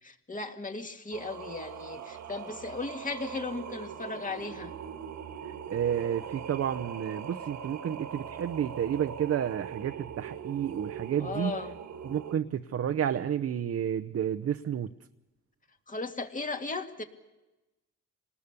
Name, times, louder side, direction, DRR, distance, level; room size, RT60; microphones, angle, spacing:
voice 1, 0.0-4.7 11.2-11.8 15.9-17.0, left 3 dB, 25° left, 2.2 m, -36 dB
Singing, 1.1-12.3, right 8 dB, 65° right, 1.8 m, -41 dB
voice 2, 5.7-11.5 12.0-14.9, right 9 dB, 50° right, 0.9 m, -31 dB
27.0 x 20.0 x 6.8 m
cardioid pair, 90°, 30 cm